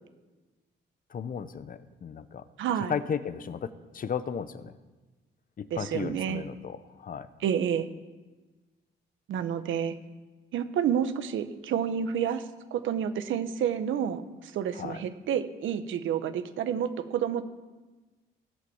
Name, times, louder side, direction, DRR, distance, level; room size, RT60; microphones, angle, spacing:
voice 1, 1.1-2.4 2.9-4.8 5.6-7.3 14.7-15.0, left 7 dB, 45° left, 12 dB, 0.9 m, -35 dB
voice 2, 2.6-2.9 5.7-6.5 7.4-7.9 9.3-9.9 10.5-12.4 12.7-17.4, right 8 dB, 80° right, 10 dB, 1.2 m, -29 dB
17.5 x 8.4 x 7.2 m, 1.2 s
cardioid pair, 90°, 20 cm